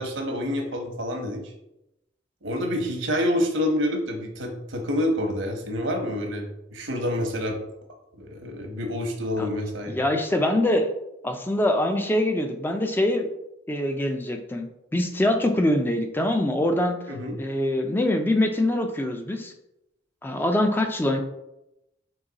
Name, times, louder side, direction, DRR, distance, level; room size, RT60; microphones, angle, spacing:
voice 1, 0.0-1.5 2.4-7.6 8.2-10.0 17.1-17.4, left 1 dB, 75° right, 3 dB, 0.9 m, -27 dB
voice 2, 9.9-10.9 11.2-13.3 13.7-14.7 14.9-17.0 17.4-19.5 20.2-21.2, left 1 dB, 10° left, 5 dB, 0.3 m, -24 dB
3.9 x 2.9 x 3.9 m, 0.87 s
head